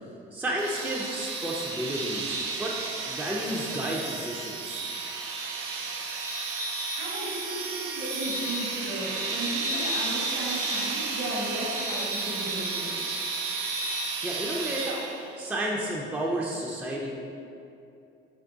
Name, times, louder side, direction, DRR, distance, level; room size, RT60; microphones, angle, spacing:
voice 1, 0.3-2.8 3.0-4.9 14.2-14.9 15.4-17.1, right 1 dB, 10° right, -3 dB, 0.4 m, -31 dB
sound 1, 0.6-15.3, right 3 dB, 90° right, 0.5 m, -32 dB
voice 2, 7.0-13.2, right 1 dB, 65° right, -6 dB, 1.3 m, -35 dB
3.5 x 3.2 x 3.8 m, 2.6 s
cardioid pair, 90°, 20 cm